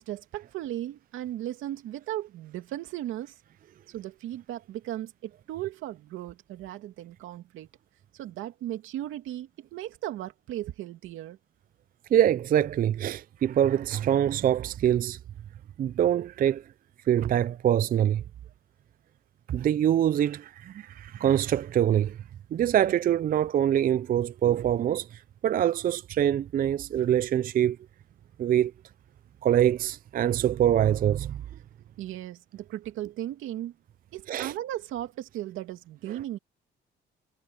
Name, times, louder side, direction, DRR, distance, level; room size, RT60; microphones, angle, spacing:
voice 1, 0.0-3.4 3.9-7.7 8.1-11.4 32.0-33.7 34.1-36.4, right 13 dB, 90° right, 2.5 m, -36 dB
voice 2, 12.1-15.2 15.8-16.6 17.1-18.2 19.5-22.2 22.5-27.8 28.4-28.7 29.4-31.4 34.3-34.5, right 10 dB, 45° right, 0.4 m, -24 dB
cardioid pair, 90°, 20 cm